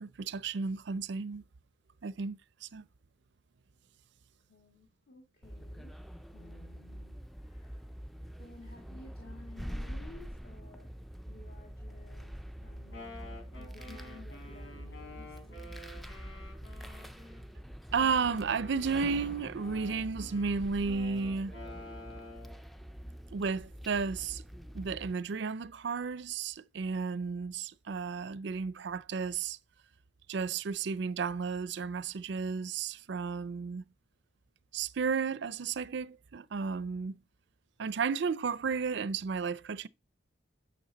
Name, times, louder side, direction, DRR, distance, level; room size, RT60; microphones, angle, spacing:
voice 1, 0.0-1.4 2.0-2.9 17.9-21.5 23.3-24.4 24.7-29.6 30.3-33.8 34.7-37.2 37.8-39.9, right 5 dB, 60° right, 0.4 m, -33 dB
voice 2, 4.5-7.9 8.4-10.9 11.3-15.8, left 2 dB, 50° left, 2.0 m, -55 dB
sound 1, 5.4-25.1, equal, ahead, 0.4 m, -45 dB
Wind instrument woodwind instrument, 12.7-17.4 17.9-22.6, left 2 dB, 80° left, 3.7 m, -50 dB
9.1 x 6.3 x 4.0 m
head